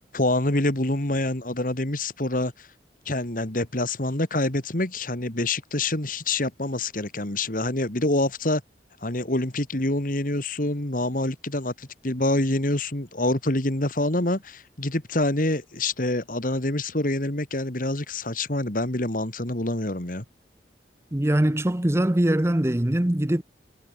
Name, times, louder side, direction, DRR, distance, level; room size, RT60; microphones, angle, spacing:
voice 1, 0.1-2.7 3.1-8.6 9.0-20.2, left 1 dB, 50° left, 2.7 m, -26 dB
voice 2, 21.1-23.4, right 1 dB, 15° right, 0.7 m, -22 dB
head